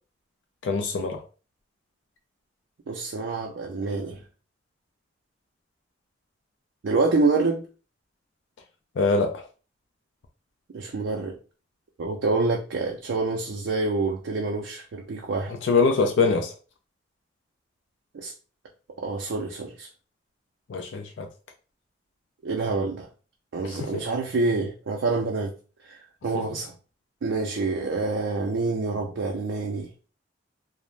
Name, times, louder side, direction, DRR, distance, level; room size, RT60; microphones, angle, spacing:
voice 1, 0.6-1.2 9.0-9.4 15.6-16.5 20.7-21.3 23.6-24.0 26.3-26.4, left 4 dB, 80° left, 0.4 m, -24 dB
voice 2, 2.9-4.2 6.8-7.6 10.7-11.3 12.0-15.5 18.1-18.3 19.0-19.9 22.4-23.1 23.5-25.5 25.9-26.0 26.2-26.7 27.2-29.9, right 3 dB, 85° right, 0.4 m, -27 dB
2.4 x 2.1 x 3.1 m
head